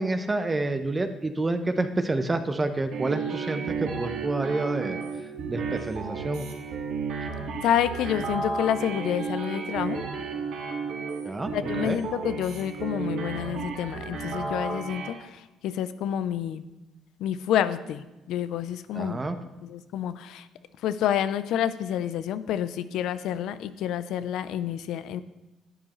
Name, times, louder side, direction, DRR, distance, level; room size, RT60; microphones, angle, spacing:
voice 1, 0.0-5.0 5.5-6.5 11.2-12.0 18.9-19.4, right 2 dB, 25° right, 8 dB, 0.7 m, -28 dB
sound 1, 2.9-15.1, right 5 dB, 75° right, 1.7 m, -33 dB
voice 2, 7.6-10.0 11.5-16.6 17.2-19.2 19.6-20.5 20.8-25.2, left 10 dB, 75° left, 13 dB, 0.5 m, -28 dB
12.0 x 8.6 x 3.1 m, 1.0 s
supercardioid pair, 70°, 0 cm